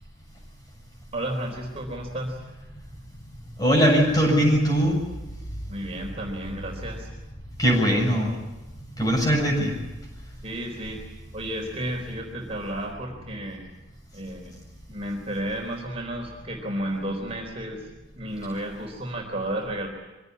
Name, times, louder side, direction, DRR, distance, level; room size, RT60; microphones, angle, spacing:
voice 1, 1.1-2.4 5.7-7.1 10.4-11.0 11.3-13.6 14.1-14.5 14.9-17.9 18.1-19.9, right 1 dB, 30° right, 0 dB, 4.1 m, -32 dB
voice 2, 3.6-5.0 7.6-8.3 9.0-9.8, equal, 20° left, 0 dB, 7.7 m, -20 dB
24.5 x 17.5 x 9.7 m, 1.1 s
head